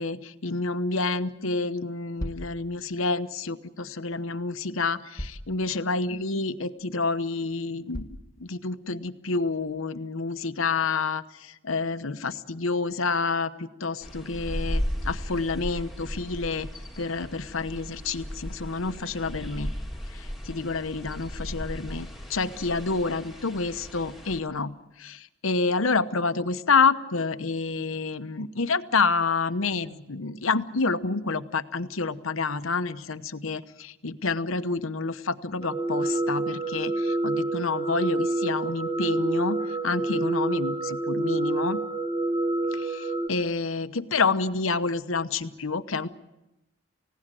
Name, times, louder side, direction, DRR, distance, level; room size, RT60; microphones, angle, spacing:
voice 1, 0.0-8.1 8.4-16.7 17.0-19.7 20.5-41.8 42.8-46.1, left 4 dB, 80° left, 11 dB, 1.0 m, -28 dB
sound 1, 2.2-2.5 4.1-4.2 5.2-5.5 6.1-6.2 6.8-6.9 7.9-8.3, equal, 15° left, 1.3 m, -36 dB
sound 2, 14.0-24.4, equal, ahead, 2.1 m, -36 dB
sound 3, 35.6-43.3, right 2 dB, 20° right, 1.5 m, -27 dB
30.0 x 17.0 x 7.7 m, 0.96 s
head